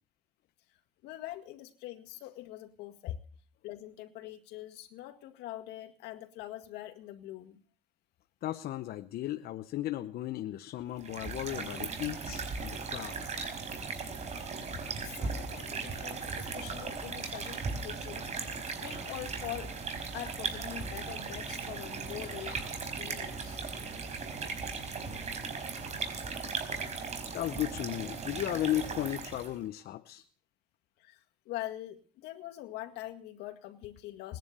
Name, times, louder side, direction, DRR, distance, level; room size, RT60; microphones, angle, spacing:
voice 1, 1.0-3.2 3.6-7.6 15.0-18.3 18.7-19.7 20.1-22.7 23.0-23.6 31.0-34.4, left 14 dB, 90° left, 5 dB, 2.0 m, -44 dB
voice 2, 8.4-13.5 27.3-30.2, left 13 dB, 70° left, 10 dB, 0.8 m, -35 dB
sound 1, 11.0-29.6, right 4 dB, 40° right, 4.7 m, -37 dB
20.0 x 10.5 x 6.7 m, 0.42 s
cardioid pair, 110°, 17 cm